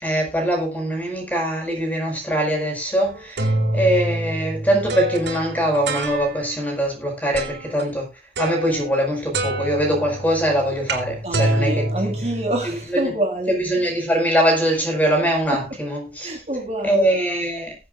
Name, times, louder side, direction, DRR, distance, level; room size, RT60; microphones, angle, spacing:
voice 1, 0.0-8.1 8.4-12.2 12.6-13.1 13.5-16.4 16.8-17.8, right 1 dB, 10° left, 5.2 m, -22 dB
sound 1, 3.1-6.6 7.3-7.8 8.4-9.1 9.3-12.8, right 1 dB, 85° right, 3.4 m, -26 dB
voice 2, 11.2-13.9 16.2-17.1, right 1 dB, 35° right, 3.3 m, -27 dB
22.0 x 7.8 x 2.5 m
head